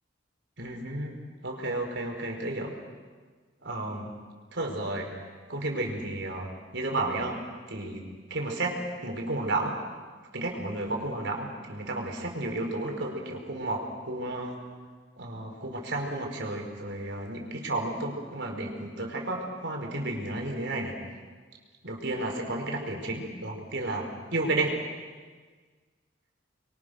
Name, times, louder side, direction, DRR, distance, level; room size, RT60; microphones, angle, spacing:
voice 1, 0.6-2.7 3.6-4.1 4.5-5.1 5.5-7.4 7.7-9.8 10.3-14.6 15.2-20.9 21.8-24.7, right 2 dB, 65° right, 1 dB, 4.8 m, -32 dB
30.0 x 23.5 x 6.6 m, 1.5 s
head